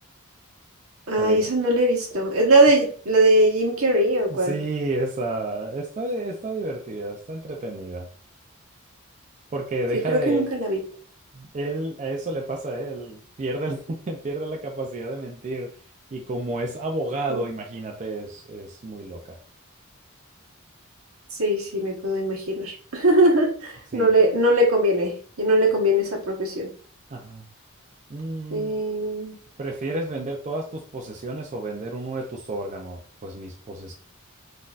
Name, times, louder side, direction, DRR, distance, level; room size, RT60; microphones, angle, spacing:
voice 1, 1.1-4.6 10.1-10.8 17.3-17.4 21.3-26.7 28.5-29.4, right 1 dB, 75° right, -1 dB, 1.2 m, -21 dB
voice 2, 4.3-8.1 9.5-10.5 11.3-15.7 16.1-19.4 23.9-24.1 27.1-27.5 28.1-28.8 29.6-33.9, right 2 dB, 35° right, 1 dB, 0.4 m, -31 dB
3.8 x 2.7 x 2.4 m, 0.42 s
head